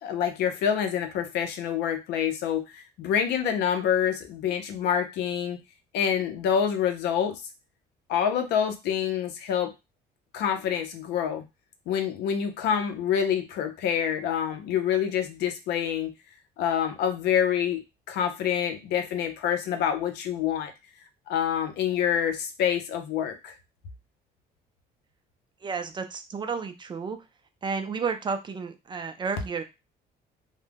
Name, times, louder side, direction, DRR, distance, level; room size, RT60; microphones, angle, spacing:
voice 1, 0.0-5.6 5.9-7.4 8.1-9.7 10.3-11.4 11.9-16.1 16.6-17.8 18.1-20.7 21.3-23.5, left 8 dB, 80° left, 7 dB, 0.6 m, -27 dB
voice 2, 25.6-27.2 27.6-29.6, right 5 dB, 25° right, 7 dB, 0.4 m, -32 dB
2.2 x 2.1 x 3.3 m, 0.25 s
cardioid pair, 110°, 17 cm